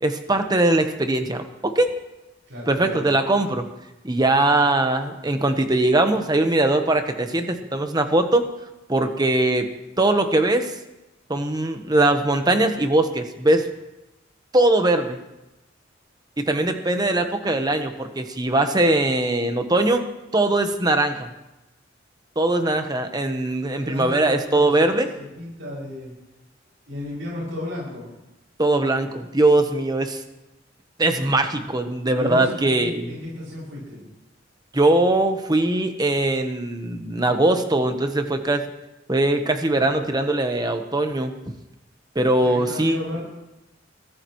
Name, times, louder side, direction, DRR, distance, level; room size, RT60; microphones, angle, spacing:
voice 1, 0.0-1.9 2.7-3.7 4.0-8.4 8.9-9.7 10.0-10.7 11.3-13.6 14.5-15.2 16.4-20.0 20.3-21.3 22.4-25.1 28.6-30.2 31.0-33.1 34.7-38.6 39.1-41.3 42.1-43.0, right 2 dB, 20° right, 7 dB, 1.1 m, -21 dB
voice 2, 2.5-3.1 23.8-24.9 25.2-26.1 26.9-28.2 32.1-34.0 42.4-43.2, left 1 dB, 85° right, -6 dB, 6.4 m, -34 dB
23.0 x 14.5 x 3.2 m, 0.97 s
head